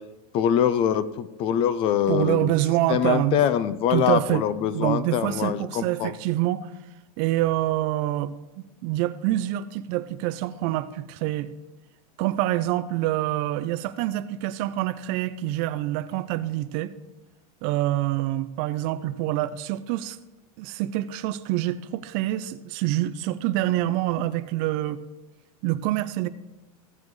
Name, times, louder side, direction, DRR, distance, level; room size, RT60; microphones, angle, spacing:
voice 1, 0.3-2.5 2.9-6.1, left 9 dB, 30° left, 0.4 m, -24 dB
voice 2, 2.1-3.4 3.9-4.4 4.7-6.7 7.2-8.3 8.8-11.5 12.2-16.9 17.6-20.2 20.6-25.0 25.6-26.3, right 14 dB, 40° right, 0.4 m, -26 dB
15.5 x 7.4 x 3.1 m
supercardioid pair, 155°, 20 cm